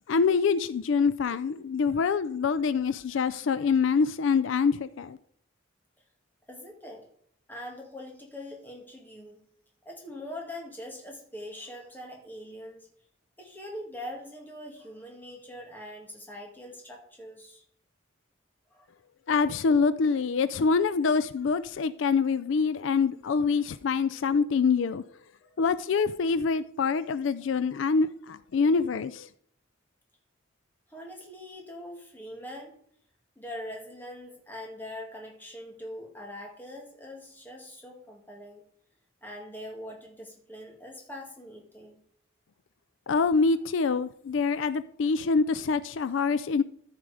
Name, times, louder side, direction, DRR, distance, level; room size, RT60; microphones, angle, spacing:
voice 1, 0.1-5.2 19.3-25.0 25.6-29.3 43.1-46.6, left 5 dB, 75° left, 0.4 m, -25 dB
voice 2, 6.5-7.1 7.5-9.4 9.9-12.9 13.4-17.6 18.7-18.9 25.4-25.5 30.9-32.7 33.4-38.6 39.2-42.0, left 1 dB, 10° left, 2.1 m, -42 dB
14.0 x 4.8 x 4.9 m
head